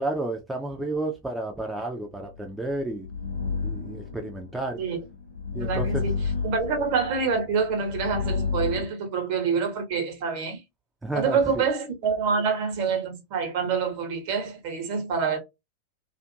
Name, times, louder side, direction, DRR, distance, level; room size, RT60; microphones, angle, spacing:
voice 1, 0.0-3.1 3.6-4.8 5.5-6.0 11.0-11.4, right 2 dB, 5° right, 0.5 m, -31 dB
sound 1, 2.4-8.8, left 5 dB, 80° left, 0.7 m, -31 dB
voice 2, 5.5-10.6 11.1-15.4, right 5 dB, 45° right, 1.0 m, -26 dB
2.4 x 2.4 x 2.7 m
figure-of-eight pair, 90°, 0 cm